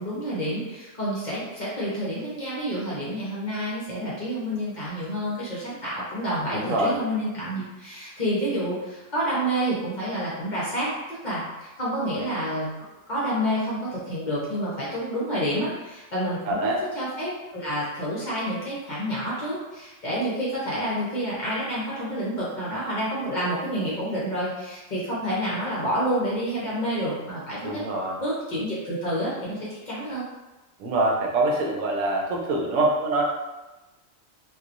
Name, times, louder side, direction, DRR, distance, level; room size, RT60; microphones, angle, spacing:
voice 1, 0.0-10.9 11.2-27.8 28.2-30.2, equal, 40° left, -8 dB, 0.9 m, -29 dB
voice 2, 6.5-6.9 16.5-16.8 27.6-28.2 30.8-33.2, right 2 dB, 80° right, -1 dB, 1.0 m, -24 dB
2.9 x 2.6 x 2.5 m, 1.1 s
omnidirectional pair, 1.4 m